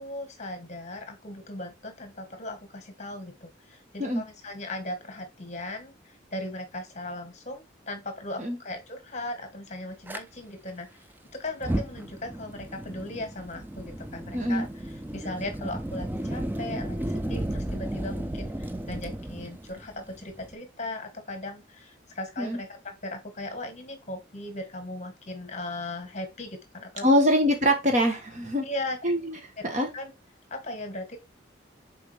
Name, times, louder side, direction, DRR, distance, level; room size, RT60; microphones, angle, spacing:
voice 1, 0.0-14.7 15.1-27.2 28.6-29.0 29.9-30.1 30.5-31.2, left 1 dB, 35° left, 1.4 m, -38 dB
Fire, 10.1-10.2 11.5-20.6, right 1 dB, 10° right, 0.3 m, -34 dB
voice 2, 14.3-14.6 22.4-22.6 27.0-28.6 29.0-29.4 29.6-29.9, equal, 40° right, 1.6 m, -23 dB
6.9 x 4.3 x 3.3 m
head